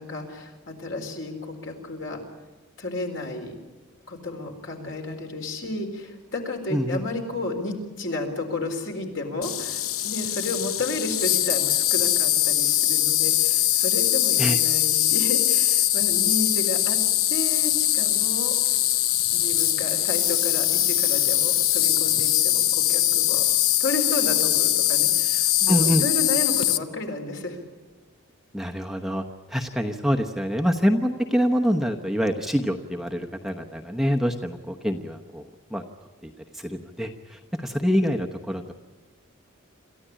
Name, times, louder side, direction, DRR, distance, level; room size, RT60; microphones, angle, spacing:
voice 1, 0.0-2.2 2.8-3.6 4.1-17.0 17.3-18.6 19.3-23.4 23.8-27.6, left 2 dB, 60° left, 3 dB, 4.0 m, -32 dB
voice 2, 6.7-7.0 14.4-14.6 25.7-26.0 28.5-29.2 29.5-35.4 35.7-35.8 36.5-38.7, equal, ahead, 2 dB, 0.9 m, -25 dB
Insect, 9.4-26.8, left 13 dB, 85° left, 0.9 m, -22 dB
27.5 x 14.5 x 10.0 m, 1.2 s
head